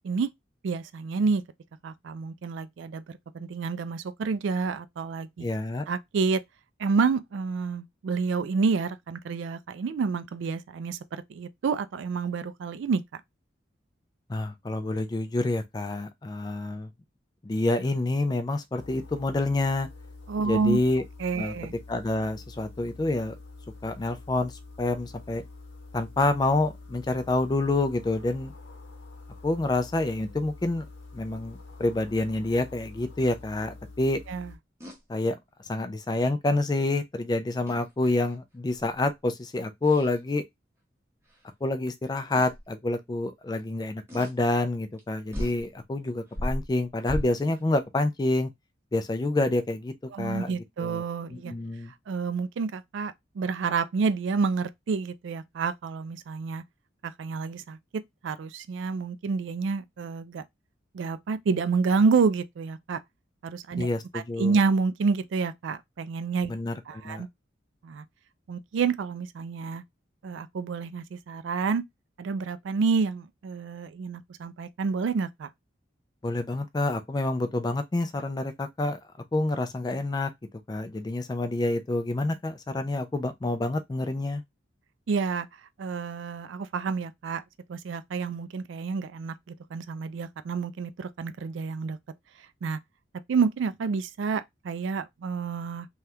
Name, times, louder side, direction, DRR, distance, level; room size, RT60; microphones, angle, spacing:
voice 1, 0.6-1.4 1.8-5.5 5.9-6.4 6.8-13.2 20.3-20.8 21.2-21.7 34.3-34.5 50.1-51.5 52.1-56.6 57.0-60.4 60.9-63.0 63.4-63.9 64.1-66.5 66.9-67.3 67.8-68.0 68.5-69.8 70.2-71.8 72.2-75.5 85.1-85.5 85.8-87.4 87.7-92.0 92.4-92.8 93.3-95.9, right 5 dB, 70° right, 0.3 m, -29 dB
voice 2, 5.4-5.8 14.3-16.9 17.4-19.9 20.4-21.0 21.4-21.5 21.9-23.3 23.8-25.4 25.9-28.5 29.4-30.8 31.1-34.2 35.1-35.4 35.6-40.4 41.6-48.5 48.9-51.0 51.3-51.9 63.8-64.6 66.5-66.8 67.0-67.3 76.2-79.0 79.3-80.3 80.7-84.4, left 2 dB, 20° left, 0.3 m, -28 dB
sound 1, 18.8-34.6, left 3 dB, 70° left, 0.9 m, -46 dB
sound 2, 34.8-35.0 37.7-38.3 38.8-39.1 39.8-40.2 41.3-41.4 42.4-42.7 44.1-44.3 45.0-45.1 45.3-45.6 46.3-47.6, equal, 15° right, 0.8 m, -35 dB
3.3 x 2.3 x 2.7 m
head